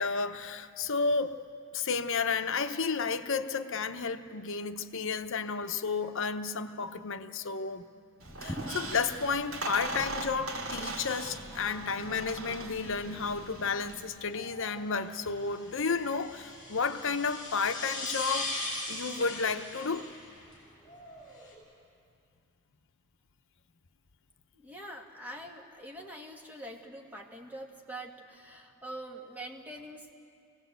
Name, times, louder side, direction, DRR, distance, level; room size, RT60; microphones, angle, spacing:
voice 1, 0.0-1.3 1.7-7.8 8.4-18.5 18.9-20.0, left 5 dB, 65° left, 9 dB, 0.9 m, -32 dB
sound 1, 8.2-21.5, left 1 dB, 20° left, 6.9 m, -41 dB
Squeak, 8.2-14.0, right 2 dB, 80° right, 2.2 m, -40 dB
voice 2, 24.5-30.1, right 1 dB, 10° right, 0 dB, 2.0 m, -44 dB
25.5 x 18.0 x 8.1 m, 2.4 s
head